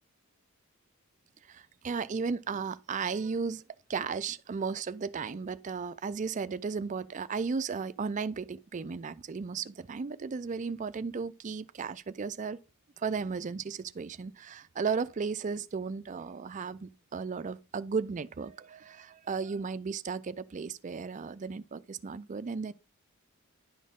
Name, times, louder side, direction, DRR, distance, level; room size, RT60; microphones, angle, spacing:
voice 1, 1.5-3.6 3.9-12.6 13.0-22.7, right 5 dB, 35° right, 0.4 m, -35 dB
11.0 x 4.3 x 3.6 m
head